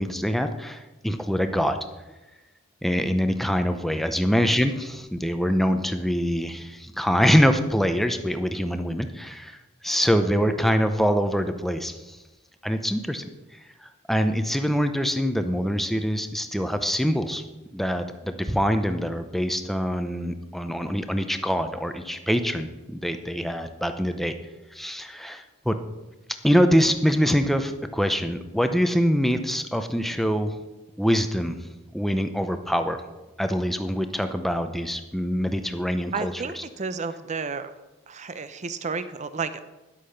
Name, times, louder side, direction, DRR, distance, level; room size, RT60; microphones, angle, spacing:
voice 1, 0.0-1.8 2.8-9.6 9.8-12.2 12.6-13.2 13.8-17.4 17.7-24.3 24.7-25.7 26.4-30.5 31.0-33.0 33.4-36.6, equal, ahead, 7 dB, 0.6 m, -24 dB
voice 2, 36.1-37.7 38.1-39.6, right 4 dB, 35° right, 12 dB, 0.6 m, -31 dB
10.5 x 8.3 x 5.7 m, 1.1 s
head